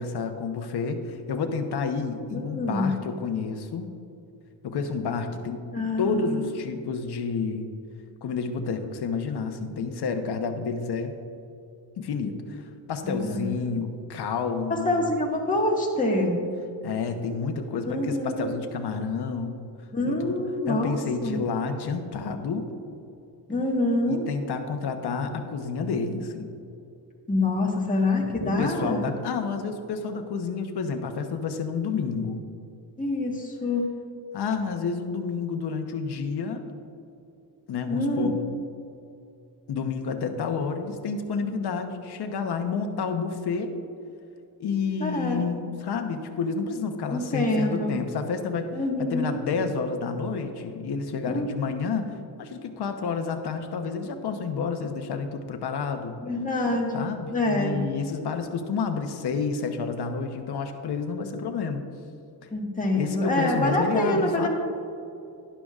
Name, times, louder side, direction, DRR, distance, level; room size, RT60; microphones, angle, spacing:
voice 1, 0.0-4.0 4.6-5.6 6.0-7.7 8.2-11.1 12.0-12.6 12.9-15.1 16.8-19.6 20.0-20.4 20.7-22.7 24.1-26.5 28.4-32.4 34.3-36.6 37.7-38.4 39.7-43.7 44.6-48.7 49.1-56.1 56.9-61.8 62.4-62.5 63.0-64.5, left 5 dB, 70° left, 6 dB, 1.0 m, -30 dB
voice 2, 2.3-3.0 5.7-6.5 13.0-13.5 14.7-16.3 17.9-18.5 19.9-21.0 21.2-21.4 23.5-24.2 27.3-29.0 33.0-33.9 37.9-38.3 45.0-45.5 47.1-48.0 48.7-49.4 51.3-51.4 56.2-57.0 57.3-57.8 62.5-64.5, left 2 dB, 20° left, -1 dB, 1.6 m, -26 dB
11.5 x 11.5 x 2.5 m, 2.6 s
wide cardioid pair, 135°, 41 cm